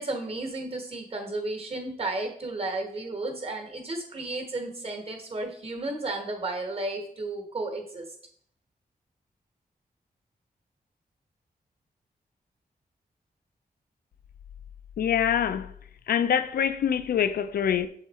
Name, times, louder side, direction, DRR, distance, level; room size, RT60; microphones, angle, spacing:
voice 1, 0.0-8.1, right 2 dB, 40° right, 1.2 m, -33 dB
voice 2, 15.0-15.7 16.1-17.9, left 8 dB, 75° left, 0.4 m, -25 dB
7.0 x 3.9 x 4.1 m
wide cardioid pair, 145°, 16 cm